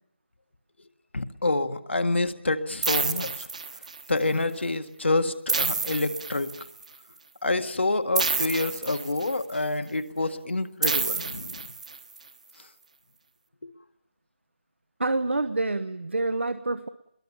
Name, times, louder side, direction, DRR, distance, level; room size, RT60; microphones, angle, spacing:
voice 1, 1.1-3.5 4.1-6.5 7.4-11.6 13.6-13.7, left 2 dB, 80° left, 8 dB, 1.8 m, -27 dB
sound 1, 2.8-4.2 5.5-6.9 8.2-9.5 10.8-12.2, right 4 dB, 35° right, 1.1 m, -29 dB
voice 2, 15.0-16.9, right 2 dB, 80° right, 12 dB, 1.0 m, -27 dB
28.0 x 22.0 x 7.2 m, 0.77 s
figure-of-eight pair, 175°, 6 cm